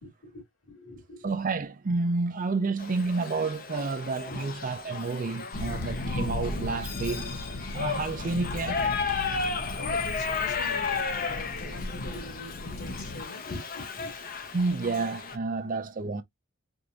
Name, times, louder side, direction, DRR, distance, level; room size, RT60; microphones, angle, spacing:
voice 1, 0.0-1.3 4.3-4.4 4.9-5.0 5.3-5.9 9.4-14.2, left 2 dB, 65° left, 2.7 m, -44 dB
voice 2, 1.2-7.3 7.7-8.8 14.5-16.2, right 3 dB, 40° right, 0.5 m, -30 dB
Shout / Livestock farm animals working animals, 2.8-15.4, left 5 dB, 45° left, 0.7 m, -34 dB
sound 1, 5.5-13.2, left 1 dB, 85° left, 0.8 m, -36 dB
4.7 x 2.6 x 2.4 m
head